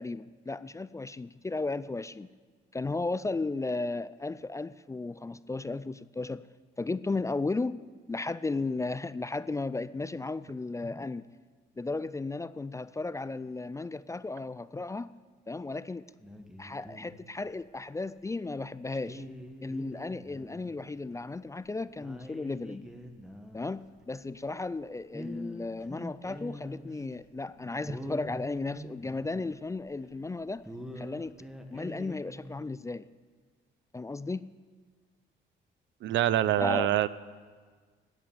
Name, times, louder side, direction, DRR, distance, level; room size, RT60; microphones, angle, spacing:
voice 1, 0.0-2.3 2.7-6.4 6.8-11.3 11.8-15.1 15.5-16.1 16.6-19.2 19.6-22.9 23.5-30.6 31.0-31.3 31.7-33.0 33.9-34.5 36.6-36.9, left 3 dB, 15° left, 16 dB, 0.3 m, -35 dB
sound 1, 16.2-17.8 18.2-18.3 18.9-20.8 21.0-21.2 21.6-21.7 22.0-24.8 25.1-27.2 27.4-27.5 27.8-30.2 30.6-32.6, equal, 5° right, 1.4 m, -45 dB
voice 2, 36.0-37.1, right 12 dB, 70° right, 17 dB, 0.5 m, -25 dB
13.5 x 8.8 x 7.2 m, 1.5 s
cardioid pair, 90°, 20 cm